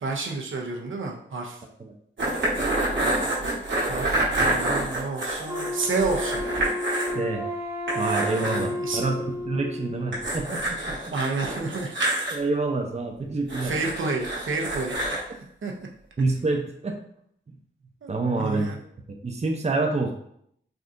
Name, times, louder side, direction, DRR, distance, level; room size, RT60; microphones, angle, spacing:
voice 1, 0.0-1.6 3.9-6.4 8.4-9.1 11.1-12.0 13.6-15.4 15.6-15.7 18.0-18.1 18.4-18.8, right 3 dB, 90° right, 0 dB, 0.6 m, -30 dB
sound 1, 2.2-7.2 7.5-7.6 7.9-8.7 10.1-12.3 13.5-15.2, right 1 dB, 70° right, 1.2 m, -27 dB
Wind instrument woodwind instrument, 5.5-10.5, left 1 dB, 15° right, 0.9 m, -32 dB
voice 2, 7.1-7.5 7.9-11.1 12.3-13.7 16.2-17.0 18.1-18.7 19.1-20.1, right 3 dB, 35° right, 2 dB, 0.5 m, -27 dB
3.5 x 2.7 x 2.5 m, 0.71 s
wide cardioid pair, 70°, 20 cm